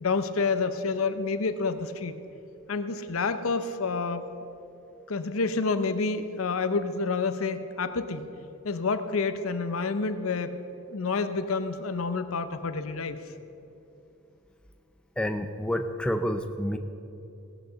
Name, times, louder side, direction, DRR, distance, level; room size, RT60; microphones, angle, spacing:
voice 1, 0.0-2.1 2.7-4.2 5.1-8.2 8.6-10.6 10.9-13.2, left 4 dB, 80° left, 10 dB, 0.7 m, -28 dB
voice 2, 15.2-16.8, equal, 5° left, 6 dB, 0.4 m, -29 dB
17.0 x 6.7 x 6.8 m, 2.9 s
head